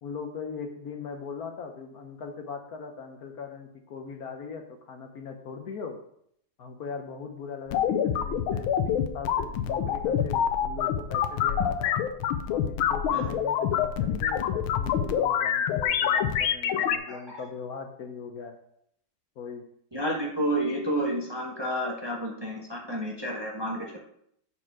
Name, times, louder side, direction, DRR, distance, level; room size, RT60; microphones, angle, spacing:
voice 1, 0.0-6.0 6.6-12.0 12.5-18.6 19.4-19.7, left 5 dB, 65° left, 5 dB, 1.0 m, -40 dB
sound 1, 7.7-17.0, left 9 dB, 85° left, 1.5 m, -26 dB
voice 2, 17.1-17.4 19.9-24.0, right 1 dB, 20° right, -1 dB, 0.7 m, -30 dB
7.3 x 4.4 x 4.8 m, 0.70 s
omnidirectional pair, 2.2 m